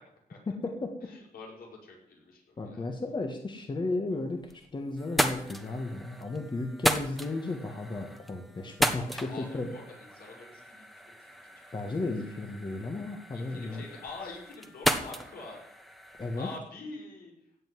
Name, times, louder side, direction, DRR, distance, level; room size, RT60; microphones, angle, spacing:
voice 1, 0.5-0.9 2.6-4.4 4.7-9.7 11.7-13.8 16.2-16.5, left 2 dB, 30° left, 3 dB, 1.7 m, -34 dB
voice 2, 1.0-2.9 9.3-12.0 13.3-15.6 16.4-17.3, left 3 dB, 80° left, -2 dB, 6.1 m, -46 dB
sound 1, 4.1-4.7 5.0-16.6, equal, ahead, 1.2 m, -35 dB
16.5 x 5.5 x 9.6 m, 0.72 s
cardioid pair, 115°, 15 cm